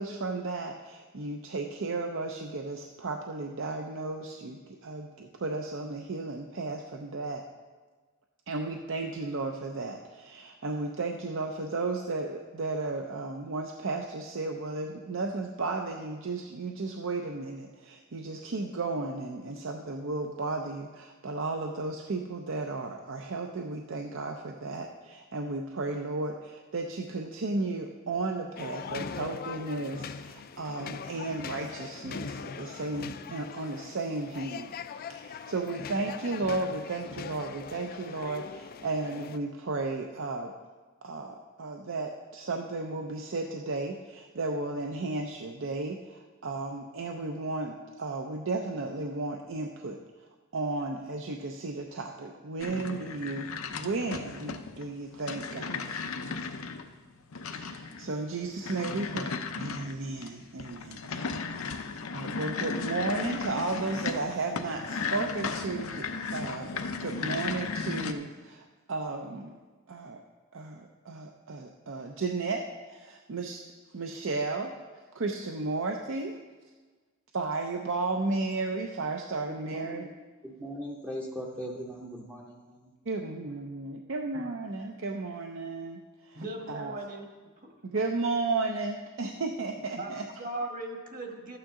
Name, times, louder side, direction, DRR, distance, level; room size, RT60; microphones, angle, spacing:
voice 1, 0.0-7.4 8.5-34.7 35.1-40.5 41.0-50.0 50.5-56.3 57.5-61.1 62.1-69.5 69.9-70.2 70.5-73.6 73.9-74.7 75.1-76.4 77.3-80.0 83.1-86.4 86.7-86.9 87.9-90.2, right 3 dB, 65° right, 3 dB, 0.6 m, -34 dB
sound 1, 28.6-39.4, left 6 dB, 45° left, 0.4 m, -41 dB
sound 2, 52.6-68.1, left 4 dB, 85° left, 0.6 m, -36 dB
voice 2, 79.7-80.1 80.4-82.9, equal, 10° right, -2 dB, 0.7 m, -39 dB
voice 3, 86.3-87.3 87.6-87.7 90.0-90.1 90.4-91.6, right 2 dB, 40° right, 2 dB, 1.4 m, -37 dB
12.5 x 8.8 x 3.7 m, 1.4 s
head